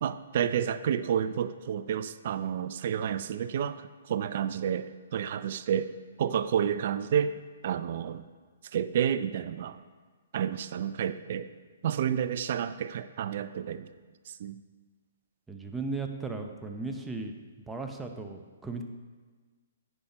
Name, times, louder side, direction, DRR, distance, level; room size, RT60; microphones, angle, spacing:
voice 1, 0.0-5.9 6.2-7.3 7.6-8.2 8.7-9.8 10.3-11.5 11.8-13.9 14.3-14.6, right 8 dB, 55° right, 13 dB, 0.4 m, -30 dB
voice 2, 15.5-17.3 17.7-18.8, right 3 dB, 5° right, 3 dB, 0.8 m, -36 dB
9.9 x 5.7 x 4.4 m, 1.4 s
hypercardioid pair, 130°, 0 cm